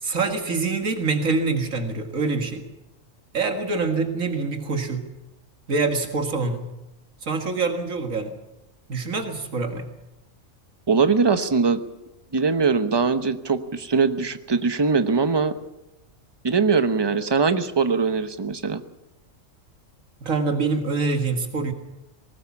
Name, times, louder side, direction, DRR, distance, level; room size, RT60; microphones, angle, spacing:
voice 1, 0.0-2.6 3.3-5.1 5.7-6.7 7.2-8.3 8.9-9.9 20.2-21.7, right 4 dB, 85° right, 5 dB, 2.2 m, -25 dB
voice 2, 10.9-11.8 12.3-15.5 16.4-18.8, right 4 dB, 20° right, 10 dB, 0.9 m, -21 dB
20.0 x 18.0 x 7.3 m, 0.94 s
omnidirectional pair, 1.4 m